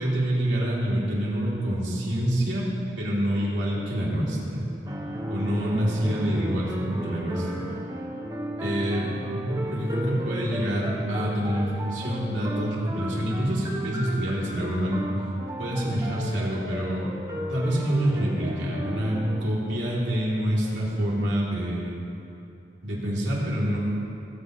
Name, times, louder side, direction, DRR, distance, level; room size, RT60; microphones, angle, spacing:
voice 1, 0.0-2.7 3.0-4.7 5.3-7.6 8.6-15.1 15.6-17.1 17.5-22.0 22.8-23.8, equal, 80° right, -6 dB, 3.3 m, -26 dB
sound 1, 4.9-19.4, equal, 20° right, 0.9 m, -34 dB
20.0 x 9.2 x 3.2 m, 2.7 s
head